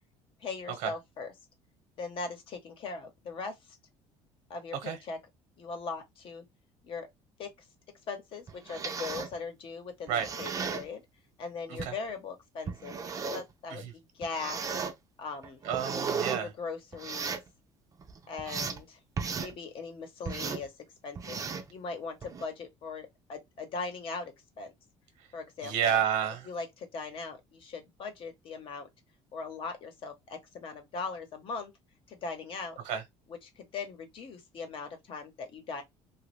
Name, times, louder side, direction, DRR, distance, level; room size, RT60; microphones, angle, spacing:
voice 1, 0.4-1.3 2.0-3.8 4.5-5.2 5.6-6.4 6.8-7.1 7.4-7.5 8.1-11.0 11.4-13.0 13.3-14.6 15.2-15.6 16.3-17.4 18.3-19.0 19.4-20.7 21.0-21.4 21.7-24.7 25.3-26.0 26.4-28.9 29.3-31.7 32.1-32.8 33.3-35.8, left 4 dB, 50° left, 1.0 m, -40 dB
sound 1, 8.5-9.3 10.1-10.9 11.8-11.9 12.7-13.5 14.2-14.9 15.4-16.4 16.9-17.5 18.0-18.8 19.2-19.5 20.3-20.7 21.2-21.7 22.2-22.5, right 5 dB, 30° right, 0.6 m, -35 dB
voice 2, 15.6-16.5 25.6-26.5 32.9-33.0, right 8 dB, 80° right, 1.0 m, -29 dB
3.0 x 2.4 x 3.2 m
cardioid pair, 130°, 12 cm